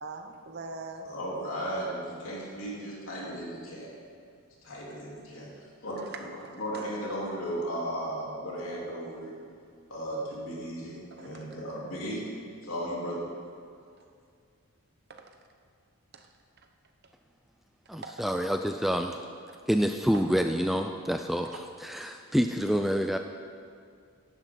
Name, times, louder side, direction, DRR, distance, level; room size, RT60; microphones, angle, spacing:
voice 1, 0.0-1.1 6.0-6.8 11.1-11.5 15.1-15.4 16.1-16.3 17.0-17.1 17.9-18.3 19.5-19.6 20.1-20.3 21.4-21.6, right 3 dB, 50° right, 5 dB, 0.9 m, -43 dB
voice 2, 1.0-3.9 4.6-6.1 6.6-9.3 9.9-12.3 12.6-13.2, equal, 70° left, -5 dB, 3.6 m, -35 dB
voice 3, 17.9-19.2 19.7-21.5 21.8-23.2, equal, ahead, 5 dB, 0.3 m, -27 dB
15.5 x 10.5 x 4.0 m, 2.2 s
head